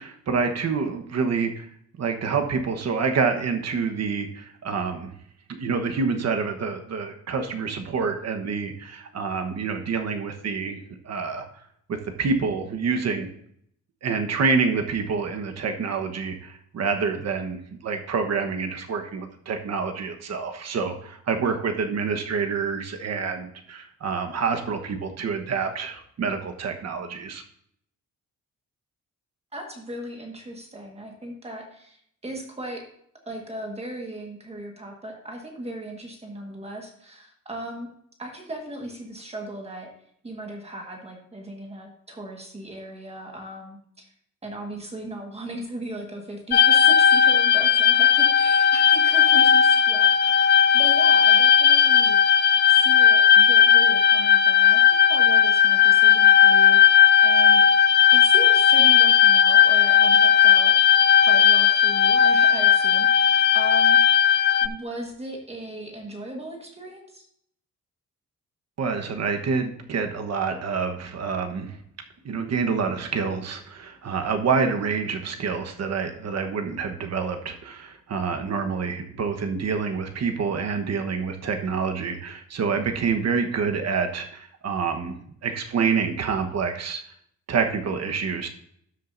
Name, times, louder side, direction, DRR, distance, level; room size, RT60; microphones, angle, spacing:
voice 1, 0.0-1.7 2.0-5.1 5.5-10.8 11.0-11.5 11.9-13.3 14.0-27.4 68.8-71.8 72.2-85.1 85.4-87.0 87.5-88.5, right 5 dB, 55° right, 5 dB, 1.2 m, -27 dB
voice 2, 29.5-32.8 33.2-37.9 38.2-39.9 40.2-44.1 44.4-52.2 52.7-56.8 57.2-57.7 58.1-60.7 61.2-64.0 64.6-67.2, right 1 dB, 20° right, 1 dB, 1.5 m, -37 dB
sound 1, 46.5-64.7, left 8 dB, 35° left, 0.4 m, -16 dB
13.0 x 7.5 x 2.6 m, 0.68 s
wide cardioid pair, 170°, 32 cm